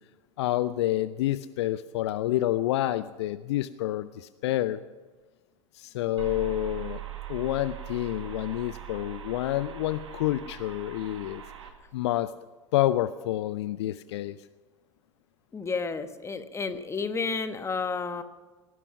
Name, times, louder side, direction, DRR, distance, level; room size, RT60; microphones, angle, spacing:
voice 1, 0.4-4.8 5.7-7.0 7.3-11.4 11.9-12.3 12.7-14.4, left 14 dB, 60° left, 16 dB, 0.5 m, -28 dB
sound 1, 6.2-11.7, right 11 dB, 70° right, 1.9 m, -40 dB
voice 2, 15.5-18.2, left 4 dB, 15° left, 11 dB, 1.2 m, -31 dB
19.5 x 11.0 x 6.0 m, 1.3 s
figure-of-eight pair, 80°, 16 cm